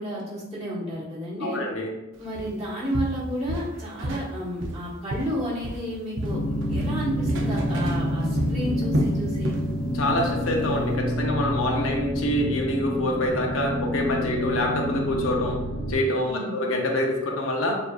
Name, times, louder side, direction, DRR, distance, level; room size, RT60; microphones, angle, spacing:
voice 1, 0.0-1.6 2.2-9.6 16.2-16.5, equal, 30° right, -8 dB, 1.5 m, -31 dB
voice 2, 1.4-1.9 9.9-15.6 15.9-17.8, left 1 dB, 80° left, 1 dB, 0.8 m, -26 dB
Walk footsteps, 2.3-2.6 2.9-4.3 4.6-5.9 6.2-9.7 10.0-10.3 10.7-10.8, right 1 dB, 65° right, 0.6 m, -30 dB
sound 1, 6.2-15.9, equal, 20° left, 0.9 m, -28 dB
6.8 x 2.6 x 2.5 m, 1.0 s
head